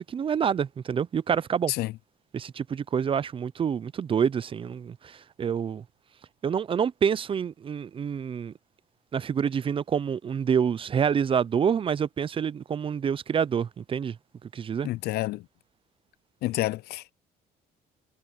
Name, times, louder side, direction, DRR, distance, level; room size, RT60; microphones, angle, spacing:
voice 1, 0.0-1.7 2.3-5.8 6.4-8.5 9.1-14.2 14.4-14.9, right 7 dB, 30° right, 0.5 m, -27 dB
voice 2, 14.8-15.4 16.4-17.1, left 17 dB, 70° left, 0.4 m, -29 dB
cardioid pair, 110°, 17 cm